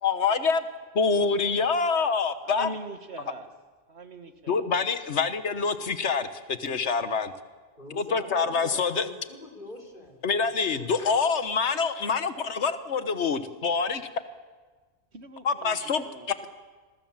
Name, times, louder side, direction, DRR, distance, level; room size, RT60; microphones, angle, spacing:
voice 1, 0.0-0.6 0.9-2.7 4.5-7.3 8.0-9.1 10.2-14.0 15.4-16.1, left 5 dB, 85° left, 10 dB, 1.5 m, -26 dB
voice 2, 2.4-3.5 3.9-4.7 15.1-16.5, right 2 dB, 75° right, 8 dB, 1.9 m, -42 dB
voice 3, 7.8-10.5 10.7-11.2, left 1 dB, 50° left, 3 dB, 4.2 m, -44 dB
27.5 x 22.0 x 7.3 m, 1.4 s
omnidirectional pair, 1.1 m